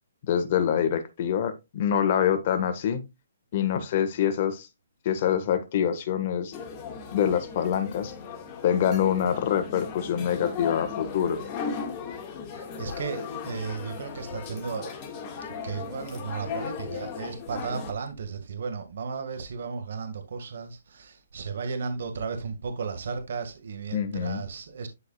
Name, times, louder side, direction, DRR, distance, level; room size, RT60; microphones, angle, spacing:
voice 1, 0.3-3.0 3.5-4.7 5.0-6.5 7.1-8.1 8.6-11.4 23.9-24.4, left 9 dB, 40° left, 1.4 m, -25 dB
sound 1, 6.5-17.9, left 6 dB, 25° left, 1.8 m, -37 dB
voice 2, 12.5-14.9 15.6-24.9, right 5 dB, 65° right, 1.8 m, -34 dB
11.5 x 4.8 x 2.4 m
hypercardioid pair, 160°, 0 cm